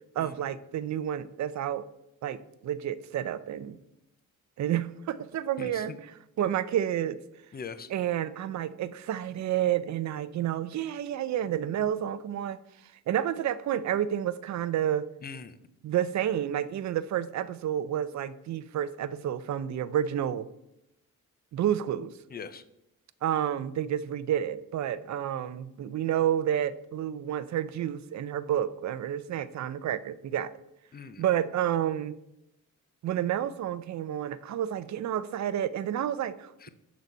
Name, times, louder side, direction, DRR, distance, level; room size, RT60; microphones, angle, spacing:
voice 1, 0.1-1.8 2.2-3.8 4.6-7.2 7.9-12.6 13.1-15.1 15.8-20.5 21.5-22.1 23.2-30.5 31.2-32.2 33.0-36.7, right 10 dB, 55° right, 15 dB, 0.5 m, -30 dB
voice 2, 5.6-6.0 7.5-7.9 15.2-15.5 22.3-22.6 30.9-31.2 36.6-36.7, left 5 dB, 30° left, 13 dB, 0.5 m, -41 dB
10.5 x 4.1 x 5.4 m, 0.85 s
wide cardioid pair, 170°, 33 cm